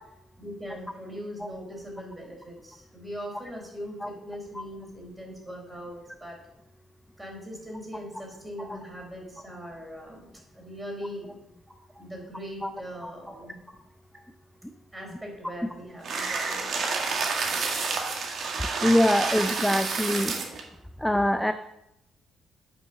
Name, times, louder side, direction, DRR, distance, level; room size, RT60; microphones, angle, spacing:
voice 1, 0.4-6.4 7.2-11.4 11.9-13.6 14.1-14.2 14.9-16.7, equal, 10° right, 0 dB, 4.4 m, -40 dB
sound 1, 16.0-20.6, right 4 dB, 60° right, 2.1 m, -29 dB
voice 2, 18.8-20.4 21.0-21.5, left 1 dB, 5° left, 8 dB, 0.5 m, -23 dB
9.3 x 6.1 x 6.6 m, 0.86 s
cardioid pair, 90°, 0 cm